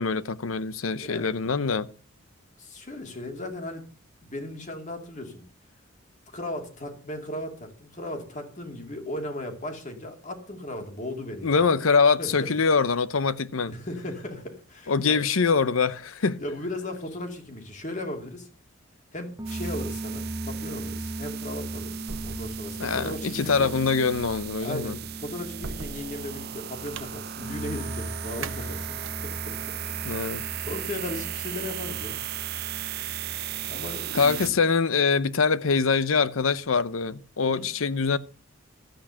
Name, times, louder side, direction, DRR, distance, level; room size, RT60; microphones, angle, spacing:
voice 1, 0.0-1.9 11.4-13.7 14.9-16.4 22.8-24.9 30.0-30.4 34.1-38.2, left 5 dB, 85° left, 0.7 m, -24 dB
voice 2, 1.0-1.3 2.6-3.8 4.2-5.4 6.3-11.7 12.2-12.5 13.7-15.2 16.4-18.5 19.1-23.7 24.6-30.0 30.6-32.2 33.7-34.6 37.4-37.7, left 1 dB, 35° left, 2.5 m, -37 dB
sound 1, 19.4-34.5, right 1 dB, 15° right, 1.2 m, -38 dB
sound 2, 19.5-34.5, right 14 dB, 50° right, 0.5 m, -37 dB
sound 3, 22.1-29.5, right 4 dB, 70° right, 0.9 m, -43 dB
13.0 x 8.8 x 5.7 m
head